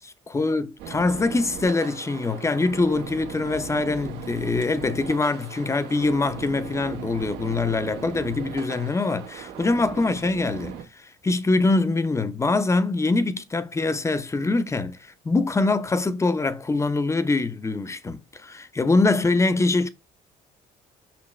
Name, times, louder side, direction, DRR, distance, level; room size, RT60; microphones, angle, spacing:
voice 1, 0.0-19.9, left 3 dB, 15° left, 0.8 m, -24 dB
sound 1, 0.8-10.8, right 8 dB, 85° right, 1.7 m, -38 dB
5.9 x 5.8 x 3.2 m
cardioid pair, 110°, 17 cm